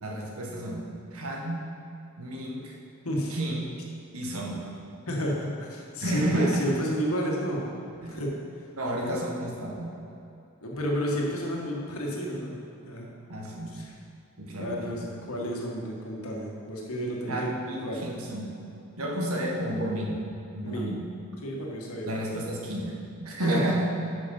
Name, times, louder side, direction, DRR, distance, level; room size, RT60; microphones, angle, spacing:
voice 1, 0.0-1.7 2.2-2.7 3.3-3.6 4.1-4.7 6.0-6.6 8.0-8.2 8.8-10.0 13.3-13.8 14.4-15.2 17.3-18.5 19.0-20.2 20.5-21.0 22.0-23.9, right 1 dB, 80° right, -1 dB, 1.5 m, -31 dB
voice 2, 5.1-7.7 8.1-8.4 9.0-9.2 10.6-12.6 12.9-13.1 13.7-13.9 14.6-18.0 20.6-20.9 21.4-22.1 23.3-23.6, equal, 80° left, -2 dB, 1.7 m, -31 dB
9.1 x 6.2 x 5.5 m, 2.8 s
head